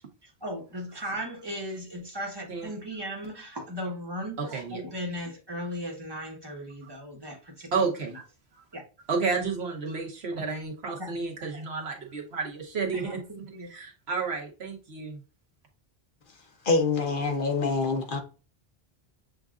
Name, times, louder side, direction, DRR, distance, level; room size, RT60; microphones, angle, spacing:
voice 1, 0.4-7.4 8.7-8.8 11.0-11.1 13.0-13.7, equal, 25° right, 1.2 m, -36 dB
voice 2, 4.4-4.8 7.7-8.1 8.5-8.6 9.1-13.2 13.7-15.2, right 4 dB, 90° right, 1.4 m, -31 dB
voice 3, 16.6-18.2, left 3 dB, 55° left, 1.0 m, -25 dB
7.3 x 2.5 x 2.4 m
omnidirectional pair, 1.0 m